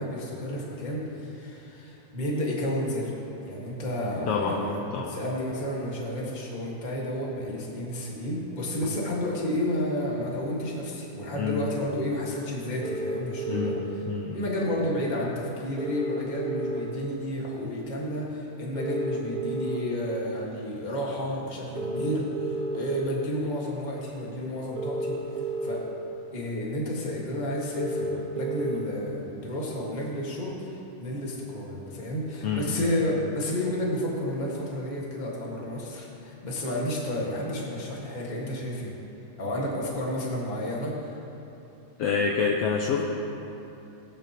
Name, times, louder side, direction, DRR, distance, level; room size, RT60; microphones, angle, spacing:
voice 1, 0.0-3.1 3.4-13.7 14.3-25.2 25.6-25.8 26.3-38.9 39.4-41.1, left 1 dB, 25° left, -3 dB, 1.0 m, -31 dB
voice 2, 4.3-4.6 4.9-5.2 8.8-8.9 11.3-11.7 13.5-13.8 14.1-14.4 32.4-32.9 42.0-43.0, left 5 dB, 85° left, 0 dB, 1.3 m, -27 dB
sound 1, 12.8-13.8 15.8-16.8 18.7-19.8 21.7-22.8 24.7-25.8 27.7-28.8, right 2 dB, 50° right, 1.1 m, -31 dB
18.5 x 10.5 x 3.0 m, 2.9 s
omnidirectional pair, 3.7 m